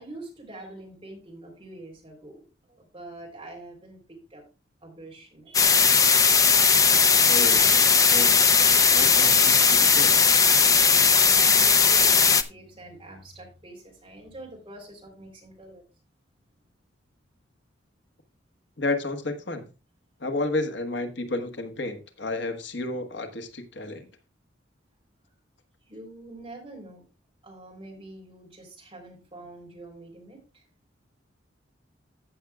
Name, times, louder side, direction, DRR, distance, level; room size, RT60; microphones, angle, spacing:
voice 1, 0.0-4.4 4.8-7.0 11.0-15.8 25.9-27.1 27.4-30.7, right 1 dB, 25° right, 3.6 m, -45 dB
sound 1, 5.5-12.4, left 5 dB, 20° left, 0.5 m, -18 dB
voice 2, 7.3-8.4 8.9-10.3 18.8-19.7 20.2-24.1, left 2 dB, 70° left, 1.3 m, -31 dB
14.5 x 7.3 x 2.3 m
head